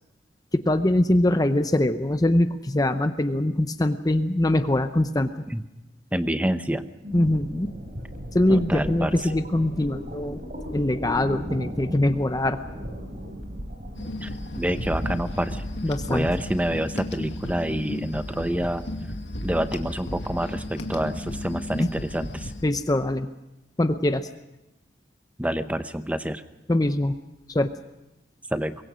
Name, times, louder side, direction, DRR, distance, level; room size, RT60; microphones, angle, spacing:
voice 1, 0.5-5.3 7.1-7.7 8.3-10.4 10.7-12.6 15.8-16.3 21.8-21.9 22.6-23.3 23.8-24.3 26.7-27.2 27.5-27.7, left 1 dB, 20° left, 9 dB, 0.7 m, -23 dB
voice 2, 6.1-6.9 8.5-9.2 14.2-14.3 14.6-15.6 16.1-18.8 19.4-22.5 25.4-26.4 28.5-28.8, right 1 dB, 10° right, 10 dB, 0.9 m, -27 dB
sound 1, 7.0-16.5, equal, 50° right, 4.3 m, -36 dB
sound 2, 14.0-22.6, left 1 dB, 90° left, 2.2 m, -34 dB
24.0 x 22.5 x 6.3 m, 0.95 s
head